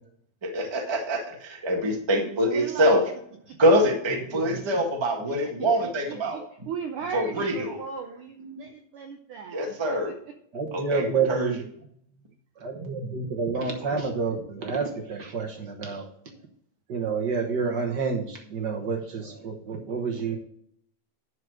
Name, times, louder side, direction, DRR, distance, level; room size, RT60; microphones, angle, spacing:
voice 1, 0.4-3.0 3.6-6.4 7.1-7.8 9.5-10.1 10.7-11.5, equal, 20° right, 1 dB, 0.7 m, -24 dB
voice 2, 2.2-3.1 3.5-3.6 5.3-10.2, right 6 dB, 80° right, 6 dB, 1.2 m, -38 dB
voice 3, 4.1-4.8 8.4-8.6 10.5-11.6 12.6-16.1 16.9-20.4, right 5 dB, 55° right, 2 dB, 1.3 m, -29 dB
11.5 x 4.8 x 6.2 m, 0.67 s
omnidirectional pair, 3.3 m